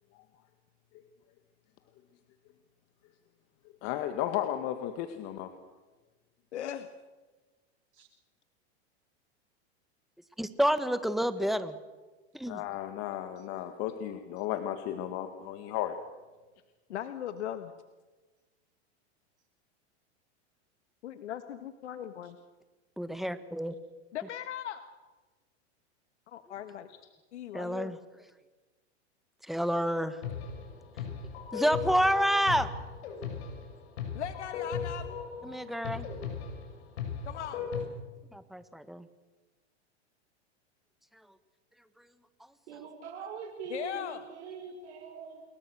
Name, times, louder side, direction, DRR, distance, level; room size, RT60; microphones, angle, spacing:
voice 1, 3.8-5.5 12.5-16.0, left 12 dB, 50° left, 7 dB, 2.1 m, -34 dB
voice 2, 6.5-6.9 16.9-17.7 21.0-22.4 24.1-24.8 26.3-26.9 27.3-28.0 34.1-35.2 37.2-37.7 43.7-44.2, left 10 dB, 85° left, 9 dB, 1.6 m, -38 dB
voice 3, 10.4-11.8 12.3-12.6 23.0-23.7 27.5-28.0 29.5-30.2 31.5-32.7 35.4-36.1 38.3-39.1, equal, ahead, 11 dB, 1.6 m, -29 dB
sound 1, 30.2-37.8, left 6 dB, 70° left, 6.6 m, -37 dB
voice 4, 42.7-45.4, right 5 dB, 80° right, -1 dB, 6.0 m, -43 dB
28.5 x 22.0 x 6.5 m, 1.2 s
hypercardioid pair, 125°, 34 cm